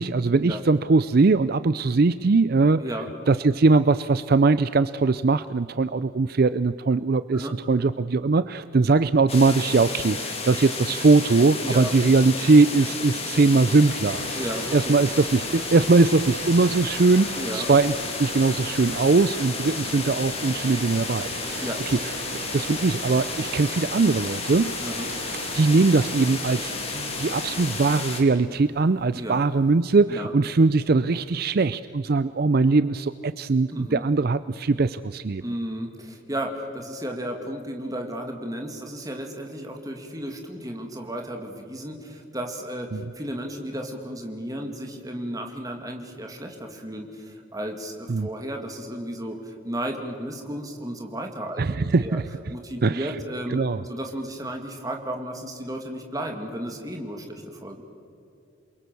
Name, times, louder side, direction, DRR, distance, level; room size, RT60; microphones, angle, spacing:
voice 1, 0.0-2.8 3.3-14.2 14.7-22.0 22.5-24.8 25.5-35.4 42.9-43.0 48.1-48.3 51.6-52.3 52.8-53.2 53.5-53.8, right 3 dB, 50° right, 14 dB, 0.5 m, -21 dB
voice 2, 2.8-3.1 7.3-7.5 11.6-11.9 14.3-14.9 17.4-17.7 21.6-21.8 24.8-25.1 29.1-29.4 30.1-30.3 33.7-34.1 35.4-42.9 43.2-51.6 52.0-52.2 52.5-53.6 53.9-57.8, right 1 dB, 20° right, 3 dB, 2.3 m, -33 dB
sound 1, 9.3-28.2, left 4 dB, 30° left, 3.0 m, -32 dB
sound 2, 14.0-30.0, right 4 dB, 70° right, 1.5 m, -40 dB
28.0 x 23.0 x 6.9 m, 2.8 s
head